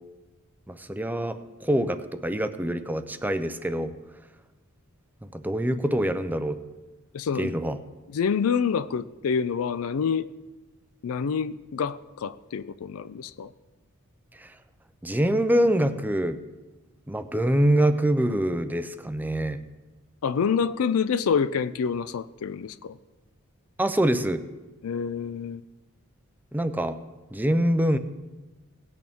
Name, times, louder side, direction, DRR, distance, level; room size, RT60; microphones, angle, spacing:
voice 1, 0.7-3.9 5.3-6.6 7.4-7.8 14.4-14.5 15.0-16.4 17.1-19.6 23.8-24.4 26.5-27.0 27.3-28.0, right 1 dB, 10° right, 10 dB, 0.5 m, -25 dB
voice 2, 7.1-7.5 8.1-10.3 11.0-13.5 20.2-23.0 24.8-25.6, left 6 dB, 75° left, 15 dB, 0.4 m, -27 dB
18.0 x 8.6 x 3.5 m, 1.1 s
head